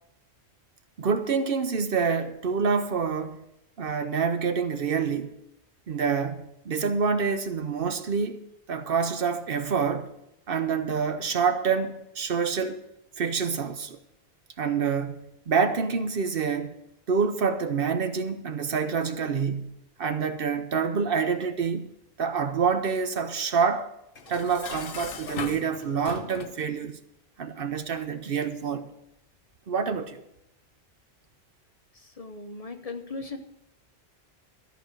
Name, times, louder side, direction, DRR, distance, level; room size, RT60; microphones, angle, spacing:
voice 1, 1.0-3.4 3.8-5.4 5.9-8.4 8.7-10.1 10.5-12.8 13.2-14.0 14.6-16.8 17.1-21.9 22.2-23.9 24.3-27.0 27.4-28.9 29.7-30.2, right 6 dB, 60° right, 0.9 m, -27 dB
Dishes pots and pans, 24.2-26.6, left 6 dB, 60° left, 1.0 m, -38 dB
voice 2, 32.0-33.4, left 3 dB, 35° left, 1.0 m, -38 dB
13.5 x 5.1 x 9.1 m
omnidirectional pair, 1.1 m